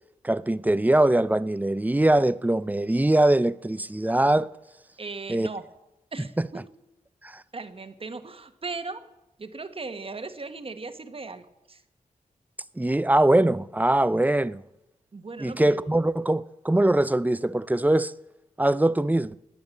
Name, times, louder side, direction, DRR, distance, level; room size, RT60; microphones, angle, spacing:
voice 1, 0.2-4.5 5.3-5.5 6.4-6.5 7.2-7.4 12.8-14.6 15.4-18.1 18.6-19.3, right 1 dB, 10° right, 0.5 m, -22 dB
voice 2, 5.0-5.6 6.1-6.6 7.5-9.0 9.4-11.8 15.1-15.8, right 3 dB, 40° right, 1.3 m, -37 dB
20.0 x 8.7 x 7.2 m
cardioid pair, 80°, 15 cm